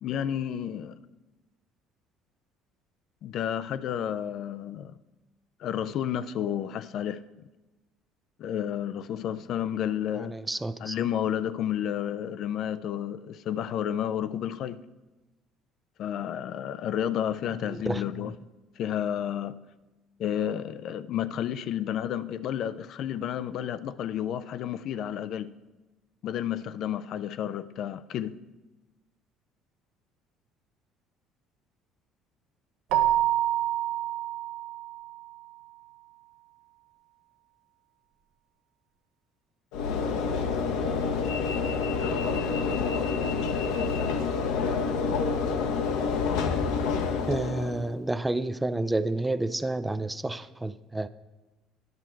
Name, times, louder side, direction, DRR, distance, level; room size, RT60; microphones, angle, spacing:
voice 1, 0.0-1.0 3.2-5.0 5.6-7.2 8.4-10.4 10.8-14.8 16.0-18.3 18.8-19.6 20.2-25.5 26.2-28.4, left 10 dB, 60° left, 0.4 m, -31 dB
voice 2, 10.2-11.0 17.7-18.0 47.3-51.1, right 2 dB, 15° right, 0.4 m, -30 dB
Keyboard (musical), 32.9-35.4, right 13 dB, 70° right, 0.5 m, -27 dB
Train / Engine / Alarm, 39.7-48.0, left 5 dB, 75° left, 0.8 m, -28 dB
10.5 x 6.0 x 4.5 m
supercardioid pair, 75°, 0 cm